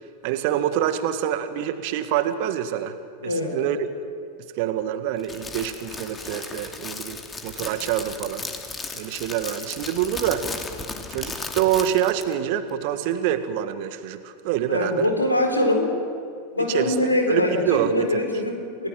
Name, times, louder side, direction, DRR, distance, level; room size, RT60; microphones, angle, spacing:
voice 1, 0.2-3.0 3.2-3.9 4.6-8.4 8.9-10.5 11.1-15.1 16.6-18.3, right 10 dB, 45° right, 9 dB, 1.8 m, -26 dB
voice 2, 3.2-3.6 14.7-15.9 16.5-18.9, left 1 dB, 85° left, 3 dB, 4.2 m, -23 dB
Crackle, 5.2-12.3, left 4 dB, 15° left, 2.5 m, -35 dB
29.5 x 18.5 x 7.7 m, 2.3 s
figure-of-eight pair, 90°, 0 cm